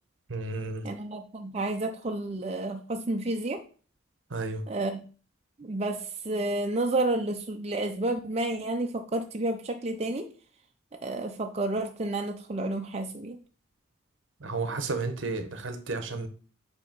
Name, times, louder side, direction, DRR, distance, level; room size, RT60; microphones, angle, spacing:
voice 1, 0.3-0.9 4.3-4.6 14.4-16.3, right 3 dB, 70° right, 8 dB, 0.9 m, -32 dB
voice 2, 0.8-3.6 4.7-5.0 5.6-10.3 11.0-13.4, right 2 dB, 30° right, 4 dB, 0.5 m, -30 dB
8.0 x 2.9 x 5.1 m, 0.39 s
head